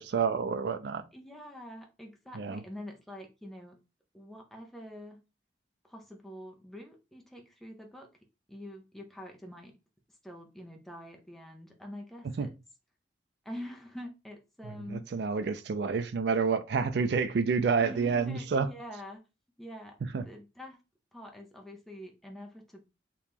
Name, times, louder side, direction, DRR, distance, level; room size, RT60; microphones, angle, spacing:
voice 1, 0.0-1.0 2.3-2.6 12.4-12.5 14.6-18.7 20.1-20.2, right 5 dB, 55° right, 0.3 m, -29 dB
voice 2, 1.1-3.8 4.1-5.2 5.8-8.1 8.5-9.7 10.2-12.5 13.4-15.0 17.8-19.2 19.6-20.0 20.2-20.8 21.1-22.8, equal, ahead, 0.5 m, -45 dB
3.0 x 2.8 x 3.5 m
head